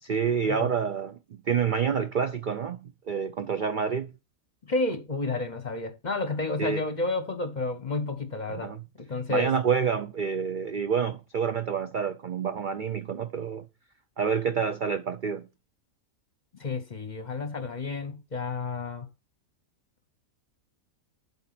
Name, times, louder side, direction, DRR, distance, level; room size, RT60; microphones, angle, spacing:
voice 1, 0.0-4.1 6.6-6.8 8.5-8.8 9.3-13.6 14.2-15.5, right 6 dB, 55° right, 0.5 m, -28 dB
voice 2, 4.6-8.7 9.0-9.5 16.6-19.1, left 3 dB, 35° left, 0.9 m, -31 dB
7.8 x 3.8 x 6.0 m
omnidirectional pair, 1.5 m